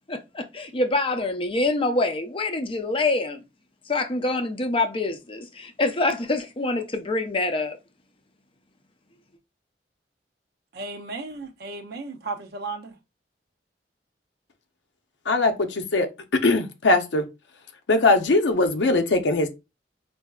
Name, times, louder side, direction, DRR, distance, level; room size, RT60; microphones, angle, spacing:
voice 1, 0.1-3.4 3.9-7.8, left 2 dB, 30° left, 0.6 m, -25 dB
voice 2, 10.7-13.0, right 3 dB, 60° right, 0.6 m, -35 dB
voice 3, 15.3-16.1 16.4-17.2 17.9-19.5, left 2 dB, 85° left, 0.6 m, -20 dB
4.7 x 2.6 x 2.3 m
head